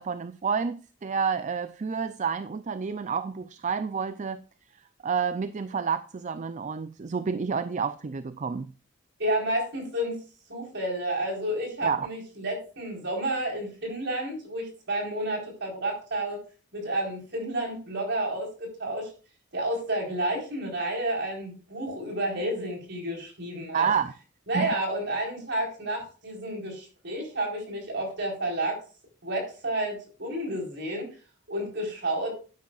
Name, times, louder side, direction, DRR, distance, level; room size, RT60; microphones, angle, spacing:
voice 1, 0.0-4.4 5.0-8.7 11.8-12.1 23.7-24.1 24.5-24.7, right 6 dB, 35° right, 0.4 m, -29 dB
voice 2, 9.2-10.2 10.5-16.4 16.7-19.1 19.5-23.9 24.5-28.8 29.2-31.1 31.5-32.3, right 1 dB, 60° right, 4.3 m, -30 dB
11.5 x 9.6 x 2.4 m
head